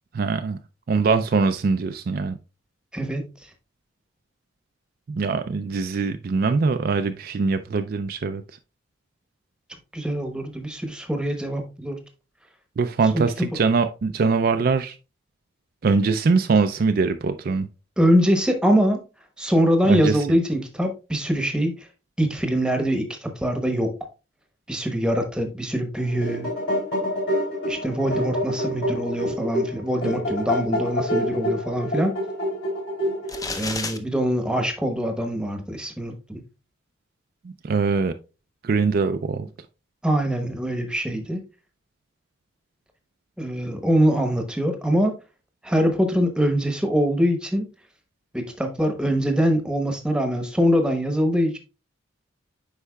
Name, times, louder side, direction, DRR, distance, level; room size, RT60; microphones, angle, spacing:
voice 1, 0.1-0.6 0.9-2.3 5.1-8.4 12.8-14.9 15.8-17.7 19.9-20.2 37.6-38.1 38.6-39.5, right 4 dB, 45° right, 0.3 m, -22 dB
voice 2, 2.9-3.3 9.9-12.0 13.1-13.5 18.0-19.0 19.4-21.9 22.2-24.0 24.7-26.5 27.7-32.1 33.5-36.4 40.0-41.4 43.4-45.1 45.6-47.7 48.3-51.6, equal, 5° right, 0.9 m, -23 dB
sound 1, 26.0-33.6, equal, 55° left, 3.2 m, -27 dB
sound 2, 33.3-34.0, left 3 dB, 15° left, 0.5 m, -30 dB
8.2 x 5.5 x 2.3 m
head